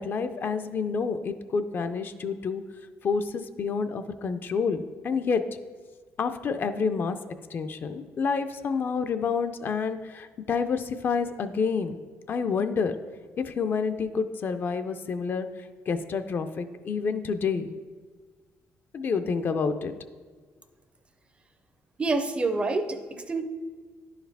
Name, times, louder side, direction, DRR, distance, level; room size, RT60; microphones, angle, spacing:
voice 1, 0.0-2.6 3.0-5.4 6.2-7.2 7.5-12.0 12.3-12.9 13.4-15.5 15.9-17.7 18.9-19.9, left 5 dB, 40° left, 8 dB, 0.4 m, -28 dB
voice 2, 22.0-23.4, right 3 dB, 20° right, 8 dB, 0.5 m, -27 dB
10.5 x 4.7 x 3.4 m, 1.5 s
cardioid pair, 135°, 5 cm